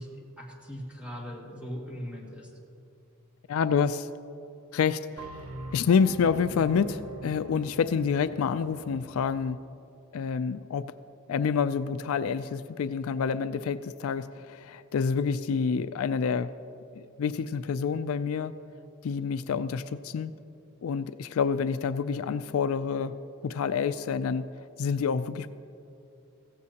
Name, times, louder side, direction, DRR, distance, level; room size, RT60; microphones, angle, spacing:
voice 1, 0.0-2.5, equal, 5° right, -3 dB, 2.0 m, -40 dB
voice 2, 3.5-4.1 4.7-5.3 5.7-9.6 10.1-10.9 11.3-16.5 17.0-18.5 19.0-20.3 20.8-23.2 23.4-24.5 24.8-25.5, left 6 dB, 75° left, 13 dB, 0.4 m, -28 dB
sound 1, 5.2-9.4, right 2 dB, 80° right, 0.8 m, -43 dB
16.0 x 14.5 x 2.9 m, 2.6 s
head